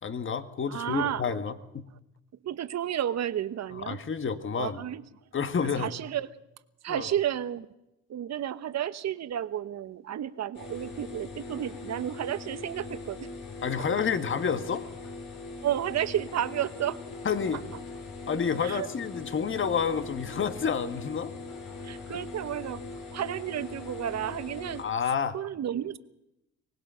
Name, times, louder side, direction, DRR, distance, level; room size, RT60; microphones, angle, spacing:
voice 1, 0.0-1.8 3.9-4.8 5.3-5.9 6.9-7.1 13.6-14.8 17.2-17.6 18.3-21.3 24.8-25.4, left 6 dB, 40° left, 10 dB, 1.7 m, -29 dB
voice 2, 0.7-1.3 2.4-4.0 4.6-5.0 5.6-6.3 6.8-7.7 8.1-13.3 15.6-17.0 18.6-18.9 21.8-22.8 23.1-24.8 25.3-26.0, right 10 dB, 60° right, 13 dB, 1.1 m, -32 dB
sound 1, 10.5-24.8, left 3 dB, 70° left, 6.6 m, -41 dB
24.0 x 19.0 x 5.7 m, 0.88 s
cardioid pair, 90°, 30 cm